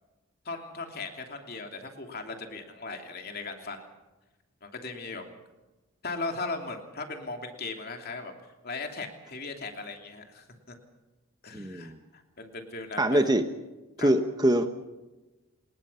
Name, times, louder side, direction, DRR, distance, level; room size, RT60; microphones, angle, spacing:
voice 1, 0.4-3.8 4.6-5.2 6.0-8.3 8.6-10.7 11.4-13.2 14.0-14.1, left 3 dB, 45° left, 4 dB, 3.0 m, -38 dB
voice 2, 11.5-12.0 13.0-13.4 14.0-14.7, right 1 dB, 20° right, 8 dB, 1.0 m, -24 dB
29.0 x 19.0 x 5.7 m, 1.1 s
head